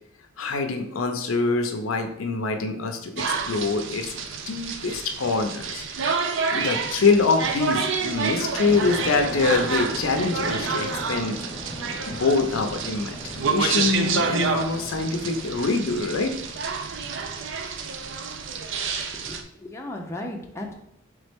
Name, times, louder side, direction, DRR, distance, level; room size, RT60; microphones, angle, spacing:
voice 1, 0.4-5.9 6.1-6.2 6.5-11.4 12.1-16.3, left 4 dB, 90° left, 6 dB, 0.6 m, -25 dB
sound 1, 3.2-19.4, right 5 dB, 65° right, 0.4 m, -29 dB
sound 2, 8.6-17.7, equal, 30° right, 1.5 m, -38 dB
voice 2, 18.9-20.7, left 1 dB, 15° left, 0 dB, 0.5 m, -36 dB
4.0 x 3.4 x 3.5 m, 0.77 s
head